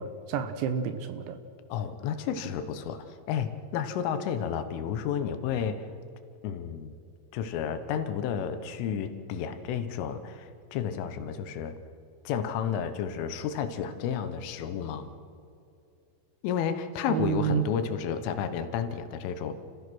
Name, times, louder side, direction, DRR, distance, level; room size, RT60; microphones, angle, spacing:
voice 1, 0.0-1.4 17.1-17.7, right 8 dB, 75° right, 9 dB, 3.0 m, -30 dB
voice 2, 1.7-5.9 6.4-7.0 7.3-11.8 12.3-15.1 16.4-19.5, left 8 dB, 80° left, 9 dB, 3.6 m, -31 dB
29.5 x 15.5 x 6.2 m, 2.6 s
omnidirectional pair, 5.7 m